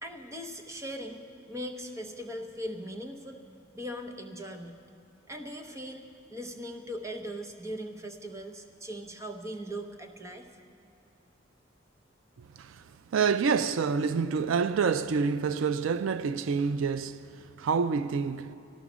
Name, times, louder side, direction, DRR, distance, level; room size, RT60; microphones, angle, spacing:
voice 1, 0.0-1.2 1.5-3.4 3.7-4.8 5.3-10.5, equal, 15° right, 0.8 m, -39 dB
voice 2, 13.1-17.2 17.6-18.5, right 5 dB, 90° right, 0.4 m, -27 dB
14.0 x 12.0 x 6.1 m
head